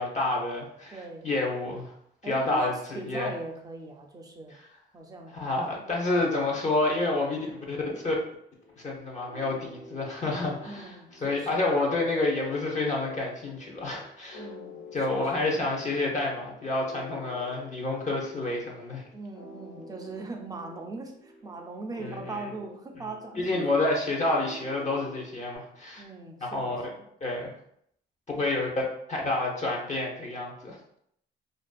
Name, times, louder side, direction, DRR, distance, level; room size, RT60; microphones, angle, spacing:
voice 1, 0.0-1.9 2.2-3.3 5.3-7.4 7.7-7.8 8.0-8.1 8.8-14.4 14.9-19.0 22.0-22.4 23.4-26.0 26.4-26.8 27.2-27.5 28.4-28.7 29.1-30.8, left 2 dB, 35° left, -2 dB, 0.7 m, -29 dB
voice 2, 0.9-1.3 2.2-4.6 4.9-5.3 5.7-5.9 10.6-11.7 14.3-15.5 19.1-23.8 24.8-24.9 26.0-27.1 28.3-28.6, right 3 dB, 20° right, 2 dB, 0.4 m, -40 dB
sound 1, 6.7-25.6, left 3 dB, 85° left, 1.2 m, -47 dB
2.5 x 2.4 x 2.2 m, 0.72 s
cardioid pair, 90°, 20 cm